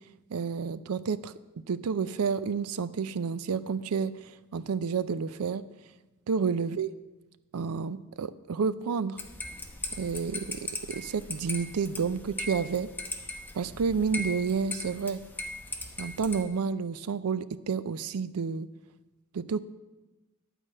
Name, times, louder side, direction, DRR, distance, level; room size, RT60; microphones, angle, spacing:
voice 1, 0.3-1.3 1.7-5.6 6.3-6.9 7.5-9.2 10.0-12.9 13.5-15.2 16.0-18.7 19.3-19.6, right 5 dB, 75° right, 15 dB, 0.4 m, -30 dB
sound 1, 9.2-16.4, left 2 dB, 10° left, 0.9 m, -39 dB
11.0 x 4.9 x 7.5 m, 1.1 s
head